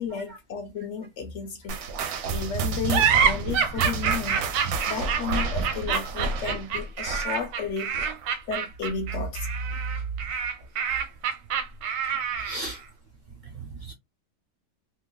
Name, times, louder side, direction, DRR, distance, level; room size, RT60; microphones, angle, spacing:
voice 1, 0.0-1.9 2.3-4.5 4.9-8.1 8.5-9.5, left 5 dB, 65° left, 0.7 m, -33 dB
sound 1, 1.7-8.5 8.8-9.1 9.7-9.8 10.6-10.7, right 4 dB, 70° right, 0.9 m, -31 dB
Stupid Witch, 2.9-12.7, right 7 dB, 85° right, 1.3 m, -27 dB
voice 2, 12.3-12.8 13.4-13.9, right 1 dB, 35° right, 0.8 m, -37 dB
2.9 x 2.3 x 2.3 m
omnidirectional pair, 1.8 m